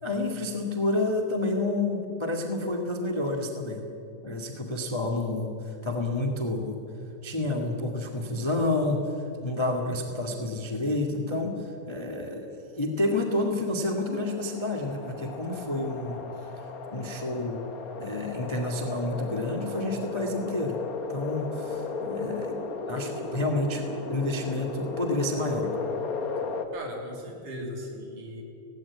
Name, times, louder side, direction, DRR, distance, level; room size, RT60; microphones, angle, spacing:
voice 1, 0.0-3.8 4.2-6.8 7.2-16.2 16.6-16.7 16.9-17.6 18.0-20.8 21.1-22.6 22.9-25.7, left 2 dB, 15° left, 2 dB, 1.0 m, -29 dB
sound 1, 13.4-26.7, left 4 dB, 70° left, 0.8 m, -35 dB
voice 2, 26.7-28.4, equal, 65° right, 0 dB, 4.6 m, -38 dB
17.5 x 17.0 x 9.7 m, 2.7 s
omnidirectional pair, 3.9 m